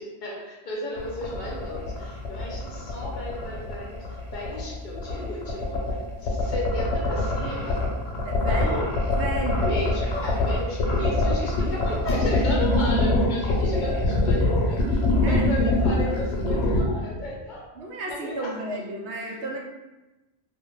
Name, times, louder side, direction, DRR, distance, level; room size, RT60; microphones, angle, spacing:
voice 1, 0.0-7.9 8.4-8.9 9.5-17.7 18.0-18.6, left 1 dB, 55° left, -4 dB, 0.6 m, -35 dB
sound 1, 1.0-16.8, left 2 dB, 90° left, 0.9 m, -24 dB
voice 2, 8.2-8.8 9.2-9.8 15.2-15.4 17.8-19.6, right 2 dB, 90° right, -1 dB, 0.9 m, -32 dB
2.4 x 2.1 x 3.0 m, 1.1 s
omnidirectional pair, 1.1 m